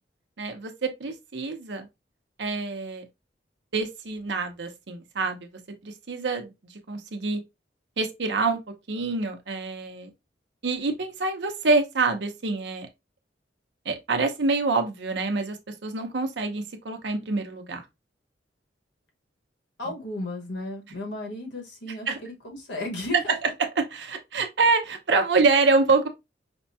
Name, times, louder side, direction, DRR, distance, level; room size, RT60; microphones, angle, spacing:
voice 1, 0.4-1.9 2.4-3.0 3.7-7.4 8.0-8.6 8.9-10.1 10.6-12.9 13.8-17.8 22.1-22.2 23.8-26.1, right 3 dB, 70° right, 0.7 m, -26 dB
voice 2, 19.8-23.4, left 1 dB, 70° left, 1.4 m, -34 dB
5.1 x 2.2 x 2.7 m
head